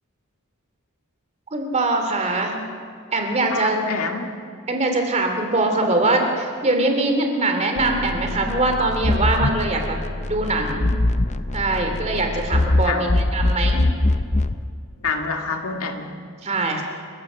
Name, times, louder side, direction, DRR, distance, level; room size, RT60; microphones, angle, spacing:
voice 1, 1.5-2.6 3.1-3.8 4.7-10.0 10.2-10.9 11.5-13.8 16.4-16.8, right 2 dB, 30° right, 4 dB, 2.6 m, -22 dB
voice 2, 3.5-4.3 12.8-13.3 15.0-16.2, left 4 dB, 80° left, 3 dB, 2.0 m, -27 dB
sound 1, 7.8-14.6, left 2 dB, 30° left, 0.6 m, -23 dB
29.0 x 15.0 x 6.2 m, 2.2 s
head